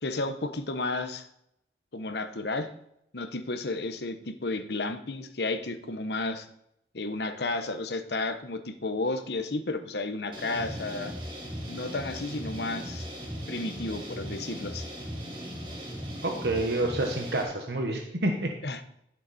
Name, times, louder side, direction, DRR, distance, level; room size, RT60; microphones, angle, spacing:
voice 1, 0.0-1.3 1.9-2.7 3.1-6.5 6.9-11.1 11.7-13.1 13.5-14.9 18.6-18.8, left 2 dB, 70° left, 8 dB, 1.0 m, -32 dB
sound 1, 10.3-17.4, equal, 25° right, 2.4 m, -38 dB
voice 2, 16.2-18.5, right 2 dB, 70° right, 2 dB, 1.3 m, -28 dB
12.0 x 7.4 x 4.3 m, 0.77 s
head